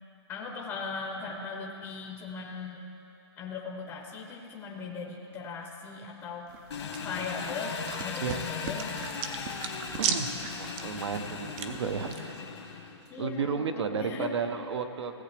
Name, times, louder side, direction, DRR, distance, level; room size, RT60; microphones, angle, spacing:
voice 1, 0.3-2.9 3.4-6.5 7.0-9.1 13.1-14.3, left 4 dB, 15° left, 0 dB, 0.7 m, -38 dB
sound 1, 6.5-12.2, right 7 dB, 25° right, 0.5 m, -37 dB
Engine, 6.7-13.2, left 5 dB, 75° left, 1.6 m, -38 dB
voice 2, 10.0-10.3 10.6-12.4 13.2-15.2, right 6 dB, 75° right, 8 dB, 0.9 m, -32 dB
17.0 x 7.6 x 3.4 m, 2.7 s
hypercardioid pair, 160°, 15 cm